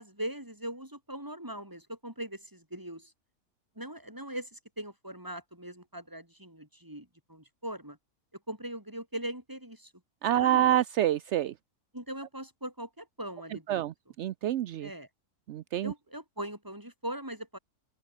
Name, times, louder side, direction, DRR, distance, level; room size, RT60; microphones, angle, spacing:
voice 1, 0.0-3.1 3.7-8.0 8.5-9.9 10.3-10.7 11.9-13.9 14.8-15.1 15.8-17.6, right 1 dB, 10° right, 4.9 m, -40 dB
voice 2, 10.2-11.5 13.7-13.9 14.2-14.9 15.5-15.9, right 12 dB, 65° right, 0.7 m, -27 dB
open air
omnidirectional pair, 1.6 m